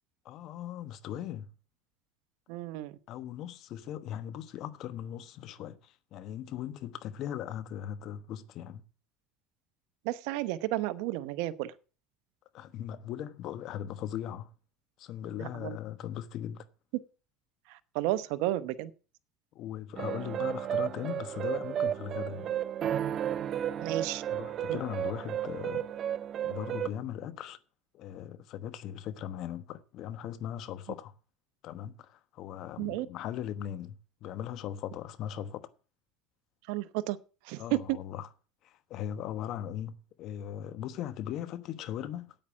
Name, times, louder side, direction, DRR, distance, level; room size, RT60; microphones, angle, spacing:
voice 1, 0.2-1.5 3.1-8.8 12.5-14.5 15.0-16.7 19.5-22.6 24.3-25.8 26.4-27.6 27.9-31.1 31.6-34.0 34.2-35.7 37.6-38.3 38.6-42.3, left 10 dB, 55° left, 1.1 m, -39 dB
voice 2, 2.5-3.0 10.0-11.7 15.4-15.8 17.7-18.9 23.8-24.2 24.7-24.8 32.8-33.1 36.7-37.2 37.4-38.0, right 16 dB, 70° right, 0.8 m, -32 dB
sound 1, 20.0-26.9, right 10 dB, 40° right, 0.6 m, -33 dB
8.9 x 8.9 x 7.3 m
supercardioid pair, 120°, 0 cm